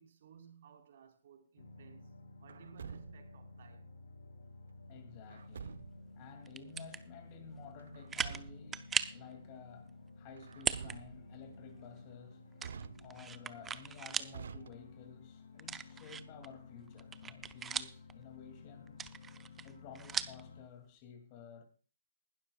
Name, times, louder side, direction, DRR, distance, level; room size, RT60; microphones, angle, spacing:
voice 1, 0.0-2.1 2.4-3.9, right 7 dB, 50° right, 4.2 m, -58 dB
sound 1, 1.6-20.6, left 3 dB, 80° left, 4.1 m, -54 dB
Truck, 2.5-3.4 5.3-6.1 7.8-8.8 10.4-11.4 12.6-13.4 14.3-15.2, right 6 dB, 70° right, 0.7 m, -48 dB
voice 2, 4.9-19.1 19.6-21.6, left 6 dB, 30° left, 2.5 m, -53 dB
sound 2, 6.5-7.0 7.6-7.7 8.1-8.4 8.7-9.2 10.5-11.0 11.3-11.4 12.6-14.3 14.7-14.8 15.6-16.5 16.9-18.1 18.9-20.4, right 7 dB, 10° right, 0.5 m, -38 dB
20.0 x 12.0 x 2.4 m
hypercardioid pair, 160°, 0 cm